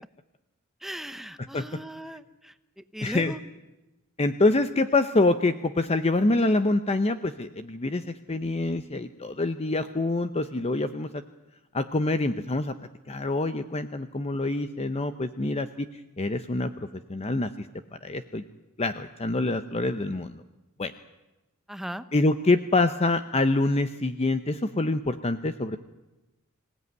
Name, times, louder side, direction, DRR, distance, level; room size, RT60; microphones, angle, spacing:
voice 1, 0.8-3.4 21.7-22.1, equal, ahead, 11 dB, 1.0 m, -38 dB
voice 2, 1.4-1.8 3.0-3.3 4.2-11.2 11.7-15.9 16.2-17.7 18.0-18.4 18.8-20.4 20.8-20.9 22.1-25.8, left 2 dB, 30° left, 10 dB, 0.8 m, -26 dB
25.5 x 17.0 x 9.5 m, 1.0 s
head